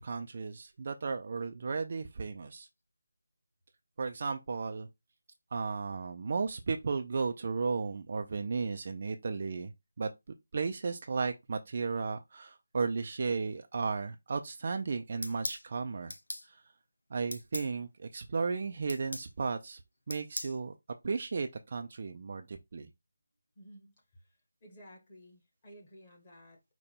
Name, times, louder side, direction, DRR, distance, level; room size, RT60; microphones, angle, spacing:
voice 1, 0.0-2.7 4.0-4.9 5.5-9.7 10.0-10.1 10.5-16.1 16.4-16.6 17.1-19.8 20.1-20.7 21.0-22.9, right 4 dB, 30° right, 0.3 m, -34 dB
sound 1, 15.2-15.6 16.1-16.5 17.3-17.7 18.9-19.3 20.1-20.6, left 2 dB, 85° left, 0.6 m, -38 dB
voice 2, 23.5-26.6, equal, 20° left, 1.2 m, -55 dB
5.1 x 2.2 x 4.3 m
figure-of-eight pair, 175°, 0 cm